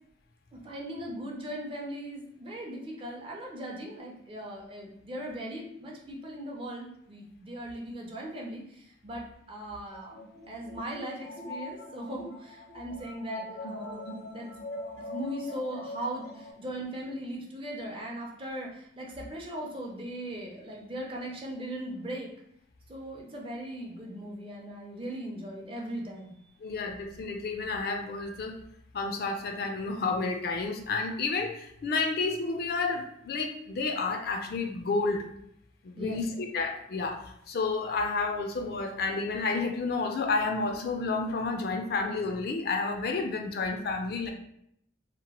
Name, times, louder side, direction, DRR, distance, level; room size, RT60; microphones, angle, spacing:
voice 1, 0.5-8.6 9.0-10.2 10.5-14.5 15.0-22.3 22.9-26.3 36.0-36.2, right 1 dB, 30° right, -1 dB, 0.5 m, -39 dB
sound 1, 9.9-16.5, left 1 dB, 90° left, 0.9 m, -42 dB
voice 2, 26.6-28.6 28.9-35.3 35.8-44.3, left 3 dB, 55° left, 3 dB, 0.3 m, -30 dB
2.8 x 2.1 x 2.9 m, 0.73 s
head